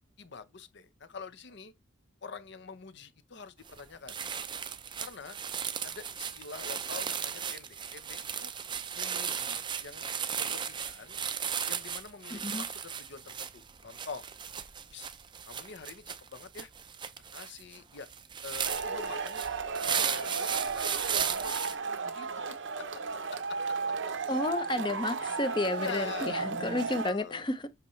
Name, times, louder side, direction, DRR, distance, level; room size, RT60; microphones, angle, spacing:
voice 1, 0.2-1.7 2.2-4.2 5.0-5.4 5.8-8.5 8.9-10.1 10.4-11.2 11.7-14.2 14.9-15.1 15.5-16.7 17.3-18.1 18.4-19.5 19.9-21.6 22.0-23.0 23.3-23.6 25.6-26.5 27.0-27.4, left 5 dB, 55° left, 0.7 m, -45 dB
sound 1, 3.7-3.8 4.1-21.7, right 8 dB, 20° right, 0.4 m, -36 dB
voice 2, 12.3-12.6 24.3-27.7, left 2 dB, 25° left, 0.6 m, -31 dB
Male speech man speaking / Shout / Clapping, 18.7-27.1, right 4 dB, 60° right, 0.7 m, -34 dB
7.9 x 5.5 x 3.1 m
head